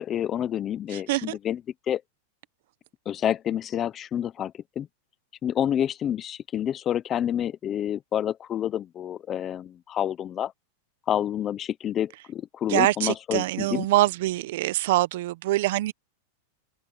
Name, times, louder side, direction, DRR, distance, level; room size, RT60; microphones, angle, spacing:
voice 1, 0.0-1.6 1.9-2.0 3.1-4.9 5.4-10.5 11.1-13.9, left 10 dB, 20° left, 0.5 m, -28 dB
voice 2, 12.7-15.9, right 17 dB, 55° right, 0.6 m, -24 dB
supercardioid pair, 170°, 0 cm